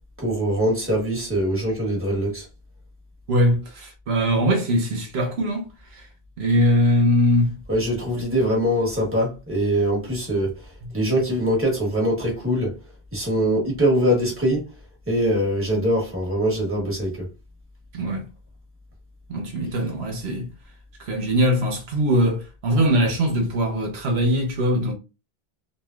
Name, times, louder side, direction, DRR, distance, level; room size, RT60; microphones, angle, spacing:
voice 1, 0.2-2.4 7.7-10.5 10.9-12.7 13.1-14.6 15.1-17.3, equal, 10° right, 1.1 m, -22 dB
voice 2, 3.3-5.7 5.9-6.0 6.4-7.6 17.9-18.3 19.3-20.5 21.0-24.9, equal, 75° right, 1.0 m, -21 dB
3.1 x 2.6 x 2.4 m
omnidirectional pair, 1.1 m